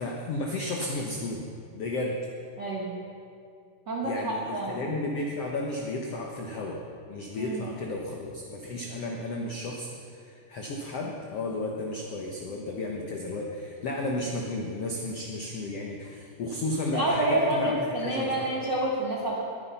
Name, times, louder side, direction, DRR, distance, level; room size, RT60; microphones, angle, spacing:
voice 1, 0.0-1.5 1.7-2.2 4.0-6.8 7.1-18.3, left 2 dB, 70° left, 0 dB, 1.4 m, -33 dB
voice 2, 2.6-3.0 3.9-4.9 7.4-7.6 16.9-19.4, right 1 dB, 50° right, -4 dB, 1.3 m, -28 dB
21.5 x 9.8 x 5.6 m, 2.5 s
omnidirectional pair, 4.4 m